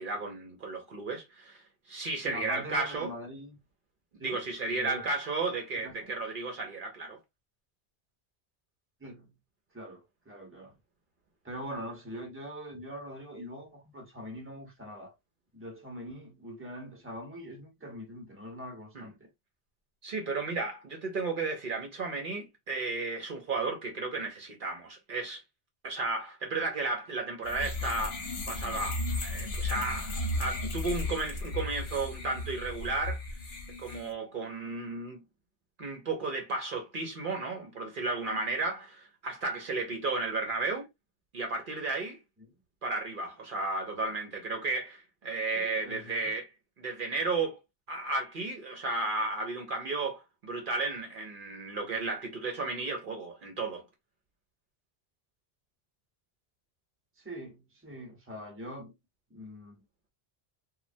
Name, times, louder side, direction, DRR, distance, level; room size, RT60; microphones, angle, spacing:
voice 1, 0.0-1.6 1.9-3.1 4.2-7.2 18.9-19.1 20.0-25.4 25.8-33.2 33.8-35.2 35.8-40.9 41.3-42.2 42.8-46.5 46.8-47.6 47.9-53.8, right 3 dB, 60° right, 0.8 m, -33 dB
voice 2, 2.2-3.6 4.2-4.4 4.7-5.0 5.7-6.1 9.0-9.3 9.7-10.8 11.4-15.1 15.5-19.3 45.5-46.3 57.2-58.9 59.3-59.8, equal, 15° right, 0.8 m, -43 dB
sound 1, 27.4-34.1, left 2 dB, 60° left, 1.0 m, -35 dB
3.1 x 2.2 x 2.5 m
omnidirectional pair, 1.1 m